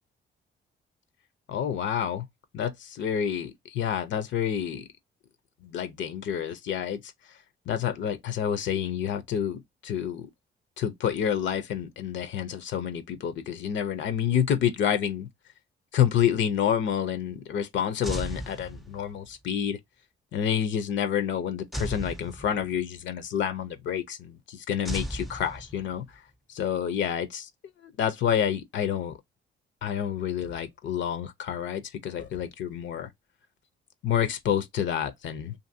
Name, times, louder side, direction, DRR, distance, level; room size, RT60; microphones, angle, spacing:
voice 1, 1.5-2.3 2.5-4.8 5.6-7.0 7.7-10.3 10.8-15.3 15.9-19.8 20.3-26.0 26.5-27.5 28.0-29.1 29.8-33.1 34.0-35.5, left 9 dB, 70° left, 0.5 m, -28 dB
sound 1, 18.0-19.3 21.7-23.0 24.8-26.1, equal, ahead, 0.3 m, -36 dB
2.6 x 2.5 x 2.5 m
cardioid pair, 90°, 20 cm